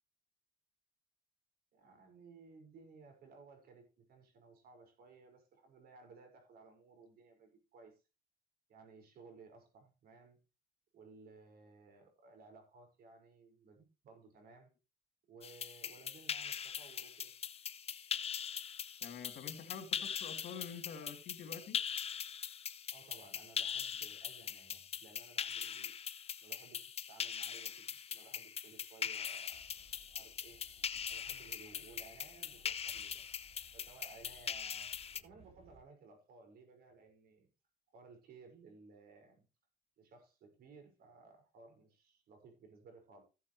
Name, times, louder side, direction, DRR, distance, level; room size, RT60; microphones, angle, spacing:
voice 1, 1.7-8.0 8.7-10.4 10.9-14.7 15.3-17.3 22.9-25.9 26.4-29.7 30.0-30.6 31.0-33.2 33.7-37.5 37.9-39.5 40.0-43.2, right 4 dB, 65° right, 5.5 m, -59 dB
sound 1, 15.4-35.2, left 8 dB, 35° left, 0.8 m, -42 dB
voice 2, 19.0-21.8, left 6 dB, 65° left, 3.3 m, -47 dB
Train, 29.5-35.8, right 2 dB, 40° right, 4.1 m, -65 dB
15.0 x 8.3 x 3.2 m
cardioid pair, 110°, 17 cm